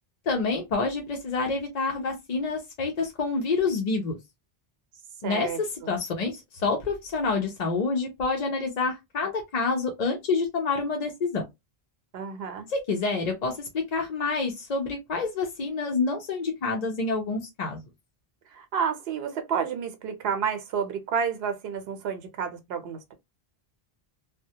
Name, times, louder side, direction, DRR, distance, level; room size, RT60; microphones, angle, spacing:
voice 1, 0.3-4.2 5.2-11.4 12.7-17.8, left 4 dB, 50° left, 0.6 m, -28 dB
voice 2, 5.2-5.9 12.1-12.7 18.5-23.1, right 6 dB, 80° right, 0.8 m, -30 dB
2.2 x 2.1 x 2.7 m
omnidirectional pair, 1.0 m